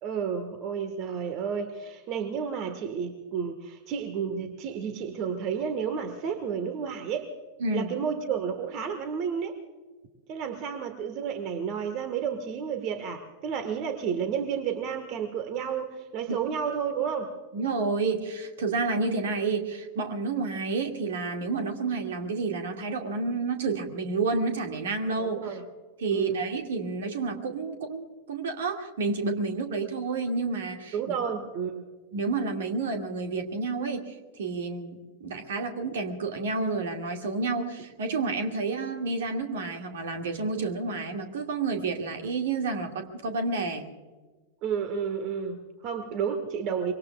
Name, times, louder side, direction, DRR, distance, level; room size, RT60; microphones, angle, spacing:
voice 1, 0.0-7.3 7.7-9.6 10.3-17.3 25.2-25.6 26.1-26.4 29.8-29.9 30.9-31.8 44.6-46.9, right 7 dB, 40° right, 8 dB, 1.6 m, -31 dB
voice 2, 7.6-7.9 16.3-16.4 17.5-25.6 26.0-31.0 32.1-43.9, right 4 dB, 60° right, 4 dB, 2.2 m, -30 dB
25.5 x 23.5 x 2.4 m, 1.3 s
figure-of-eight pair, 90°, 0 cm